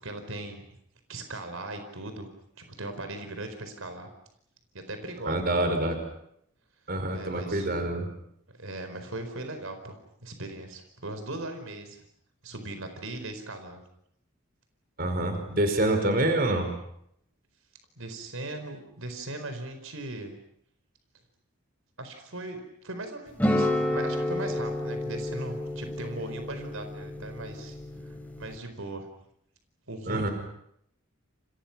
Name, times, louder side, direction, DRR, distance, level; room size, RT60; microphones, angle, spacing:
voice 1, 0.0-0.7 1.1-2.3 2.6-4.1 4.7-5.7 7.1-7.7 8.5-12.0 12.4-13.8 16.0-16.1 18.0-20.3 22.0-27.8 28.0-29.1 29.9-30.3, right 2 dB, 80° right, 7 dB, 4.4 m, -39 dB
voice 2, 5.3-6.0 6.9-8.1 15.0-16.7 30.1-30.3, right 1 dB, 45° right, 6 dB, 5.2 m, -26 dB
sound 1, 23.4-28.6, left 1 dB, 10° left, 3.4 m, -30 dB
29.5 x 29.0 x 6.0 m, 0.72 s
head